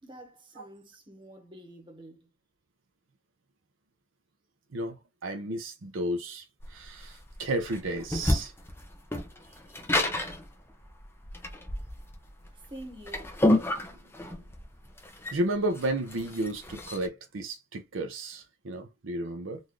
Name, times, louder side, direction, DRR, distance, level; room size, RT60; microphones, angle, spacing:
voice 1, 0.0-2.3 12.5-13.4, right 1 dB, 25° right, 1.1 m, -47 dB
voice 2, 5.2-6.4 6.7-8.5 15.3-19.6, right 1 dB, 85° right, 0.7 m, -32 dB
sound 1, 6.6-17.1, left 1 dB, 10° left, 0.7 m, -30 dB
3.9 x 2.6 x 3.1 m
head